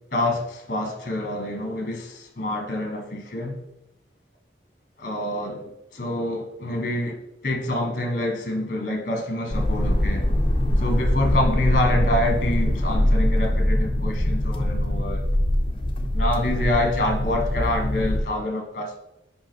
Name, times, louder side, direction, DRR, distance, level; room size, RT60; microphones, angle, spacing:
voice 1, 0.1-3.6 5.0-10.2 10.8-15.2 16.1-18.9, left 1 dB, 45° left, 3 dB, 1.3 m, -27 dB
sound 1, 9.5-18.2, left 1 dB, 30° left, 0.7 m, -23 dB
5.5 x 5.1 x 4.5 m, 0.82 s
head